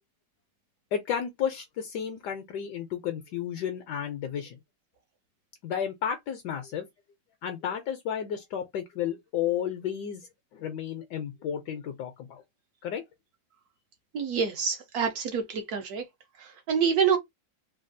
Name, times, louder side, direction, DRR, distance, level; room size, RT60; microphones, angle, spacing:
voice 1, 0.9-4.6 5.6-6.9 7.4-10.3 10.5-12.4 12.8-13.0, left 9 dB, 75° left, 1.1 m, -32 dB
voice 2, 14.1-16.0 16.4-17.2, right 7 dB, 70° right, 1.0 m, -27 dB
3.3 x 2.3 x 2.6 m
omnidirectional pair, 2.0 m